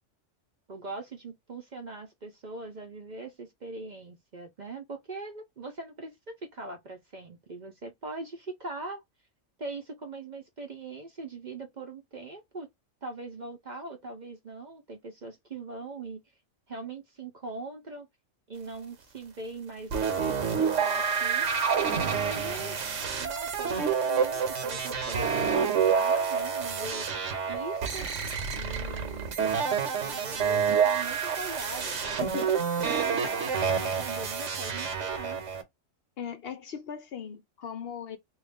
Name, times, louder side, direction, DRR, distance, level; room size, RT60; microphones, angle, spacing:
voice 1, 0.7-9.0 9.6-12.7 13.0-16.2 16.7-18.1 18.5-21.5 22.0-22.8 23.2-27.1 27.5-28.1 28.5-29.4 30.0-35.4, right 3 dB, 45° right, 0.7 m, -41 dB
sound 1, 19.9-35.6, right 6 dB, 75° right, 1.2 m, -28 dB
voice 2, 36.2-38.2, left 7 dB, 60° left, 0.7 m, -38 dB
3.1 x 2.4 x 3.4 m
omnidirectional pair, 1.3 m